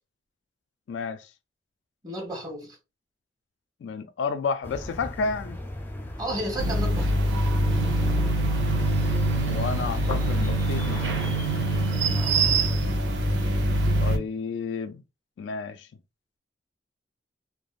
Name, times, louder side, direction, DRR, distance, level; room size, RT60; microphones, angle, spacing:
voice 1, 0.9-1.3 3.8-5.6 9.4-11.2 14.0-15.0 15.4-15.9, left 5 dB, 90° left, 0.3 m, -31 dB
voice 2, 2.0-2.8 6.2-7.3 12.1-12.6, right 1 dB, 20° right, 1.0 m, -33 dB
sound 1, 4.6-12.7, left 1 dB, 10° left, 0.4 m, -38 dB
sound 2, 6.6-14.2, right 1 dB, 80° right, 0.7 m, -24 dB
3.3 x 2.0 x 2.3 m
head